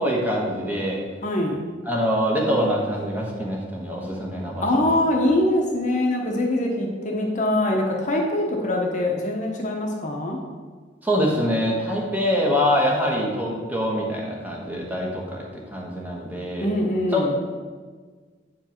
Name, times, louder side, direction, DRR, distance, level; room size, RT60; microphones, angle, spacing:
voice 1, 0.0-1.0 1.8-5.0 11.0-16.7 17.1-17.3, equal, 10° right, -3 dB, 1.2 m, -24 dB
voice 2, 1.2-1.6 4.6-10.4 16.6-17.3, left 1 dB, 40° left, 0 dB, 0.9 m, -23 dB
8.4 x 4.6 x 4.4 m, 1.5 s
head